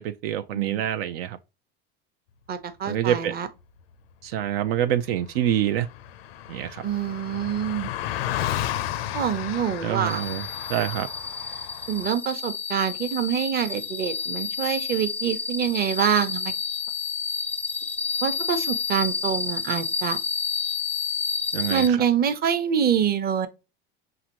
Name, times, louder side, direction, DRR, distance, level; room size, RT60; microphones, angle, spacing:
voice 1, 0.0-1.4 2.9-3.3 4.2-5.9 6.5-6.8 9.8-10.4 10.7-11.1 21.5-22.0, right 11 dB, 80° right, 0.5 m, -26 dB
voice 2, 0.5-0.8 2.5-3.5 6.8-7.9 9.1-10.2 11.9-16.5 18.2-20.2 21.7-23.5, right 8 dB, 30° right, 0.8 m, -25 dB
Car passing by, 5.0-5.1 5.2-12.1, left 12 dB, 85° left, 0.5 m, -33 dB
sound 1, 10.1-21.9, left 5 dB, 5° left, 0.3 m, -30 dB
5.8 x 2.6 x 2.9 m
supercardioid pair, 100°, 29 cm